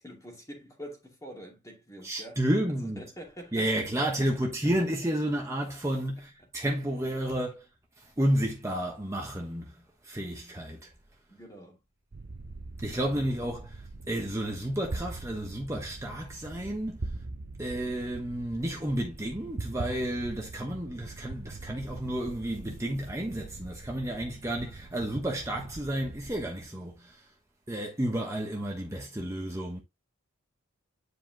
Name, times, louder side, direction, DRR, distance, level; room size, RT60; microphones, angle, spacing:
voice 1, 0.0-2.4 2.8-4.3 6.4-6.5 11.3-11.8, equal, 15° left, 2.5 m, -46 dB
voice 2, 2.0-3.0 3.5-7.7 8.0-10.9 12.8-17.1 17.6-27.3 27.7-29.8, right 1 dB, 15° right, 1.1 m, -31 dB
sound 1, 12.1-26.5, right 2 dB, 55° right, 0.7 m, -42 dB
9.9 x 5.0 x 2.9 m
head